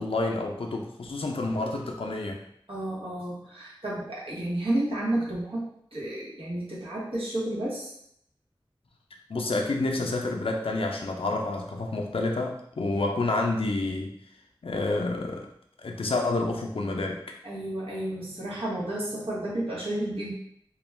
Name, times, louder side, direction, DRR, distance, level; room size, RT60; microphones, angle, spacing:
voice 1, 0.0-2.4 9.3-14.1 14.6-15.5 15.8-17.2, left 2 dB, 75° left, 1 dB, 0.4 m, -29 dB
voice 2, 2.7-7.9 17.4-20.3, right 1 dB, 75° right, -6 dB, 0.9 m, -31 dB
2.4 x 2.2 x 3.1 m, 0.71 s
wide cardioid pair, 50°, 9 cm